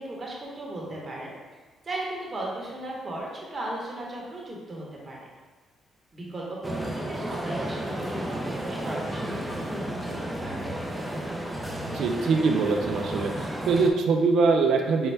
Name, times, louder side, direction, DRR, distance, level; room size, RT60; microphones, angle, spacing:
voice 1, 0.0-1.3 1.8-5.2 6.1-10.8, right 1 dB, 35° right, -4 dB, 1.0 m, -36 dB
sound 1, 6.6-13.9, right 1 dB, 5° right, 0.5 m, -33 dB
voice 2, 11.9-13.3 13.7-15.1, right 4 dB, 75° right, 3 dB, 0.4 m, -23 dB
5.3 x 2.1 x 3.3 m, 1.3 s
cardioid pair, 90°, 0 cm